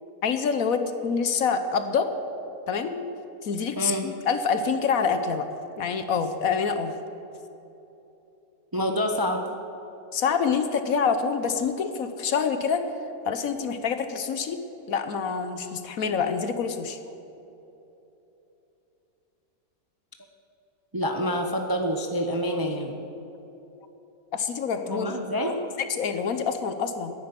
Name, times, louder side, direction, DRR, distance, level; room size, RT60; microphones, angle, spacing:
voice 1, 0.2-2.1 2.7-3.1 3.4-5.5 5.8-6.9 10.1-12.8 13.3-14.6 14.9-17.0 24.3-25.1 25.5-25.6 26.0-27.1, left 6 dB, 60° left, 9 dB, 1.2 m, -26 dB
voice 2, 3.8-4.1 8.7-9.4 20.9-23.0 24.9-25.6, equal, 20° right, 4 dB, 0.6 m, -27 dB
11.0 x 10.5 x 9.6 m, 3.0 s
omnidirectional pair, 1.8 m